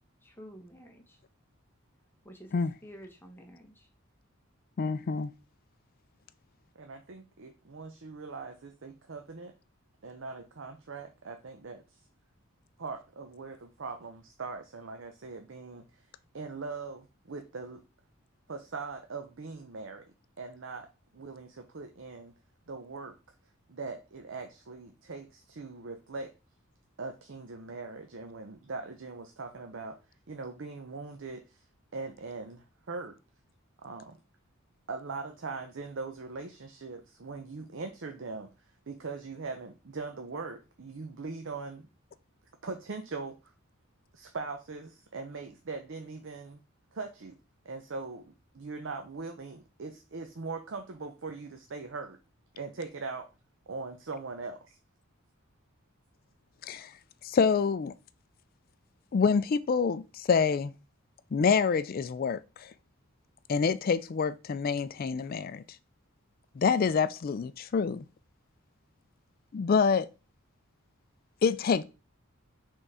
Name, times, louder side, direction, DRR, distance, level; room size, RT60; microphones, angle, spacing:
voice 1, 0.2-1.2 2.2-3.9, equal, 10° left, 1.0 m, -50 dB
voice 2, 4.8-5.3 56.6-56.9 57.2-57.9 59.1-60.7 61.3-62.7 63.5-65.6 66.6-68.0 69.5-70.1 71.4-71.8, left 5 dB, 45° left, 0.3 m, -27 dB
voice 3, 6.8-9.5 10.0-11.8 12.8-15.8 16.3-17.8 18.5-20.1 20.4-20.9 21.1-22.3 22.7-23.2 23.7-26.3 27.0-30.0 30.3-31.6 31.9-33.2 33.8-34.2 34.9-38.5 38.9-41.9 42.6-43.5 44.1-46.6 46.9-47.4 47.6-52.2 52.6-53.3 53.7-54.8, right 4 dB, 60° right, 0.6 m, -41 dB
5.3 x 3.7 x 4.8 m
head